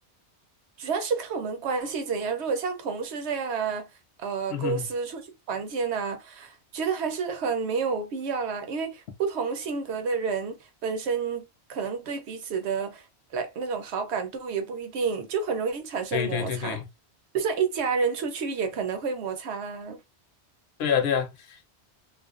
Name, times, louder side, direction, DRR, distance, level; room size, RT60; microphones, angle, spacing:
voice 1, 0.8-3.9 4.2-5.2 5.5-13.0 13.3-16.8 17.3-20.0, right 5 dB, 75° right, 0.9 m, -30 dB
voice 2, 4.5-4.9 16.1-16.9 20.8-21.6, left 7 dB, 65° left, 0.8 m, -27 dB
2.4 x 2.3 x 2.4 m
omnidirectional pair, 1.2 m